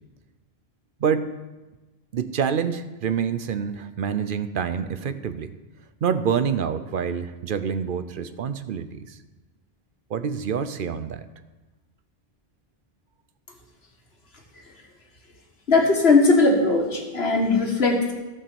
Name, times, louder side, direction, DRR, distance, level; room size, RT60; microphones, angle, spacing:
voice 1, 1.0-1.3 2.1-5.5 6.0-9.2 10.1-11.3, right 7 dB, 60° right, 11 dB, 0.7 m, -27 dB
voice 2, 15.7-18.1, left 3 dB, 80° left, 1 dB, 1.9 m, -19 dB
14.0 x 5.5 x 6.9 m, 1.1 s
omnidirectional pair, 1.0 m